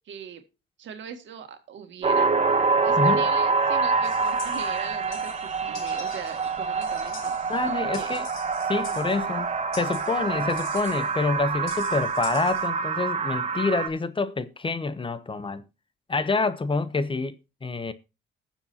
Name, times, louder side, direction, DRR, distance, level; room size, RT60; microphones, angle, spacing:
voice 1, 0.1-0.4 0.8-2.3 2.8-7.3 7.9-8.2 8.9-9.4, right 8 dB, 70° right, 2.0 m, -40 dB
sound 1, 2.0-13.9, right 4 dB, 35° right, 1.3 m, -26 dB
sound 2, 4.0-12.7, left 5 dB, 80° left, 3.0 m, -46 dB
voice 2, 7.5-8.3 8.7-9.5 9.7-15.6 16.1-17.4 17.6-17.9, left 3 dB, 25° left, 0.8 m, -27 dB
20.0 x 7.2 x 2.7 m
cardioid pair, 90°, 20 cm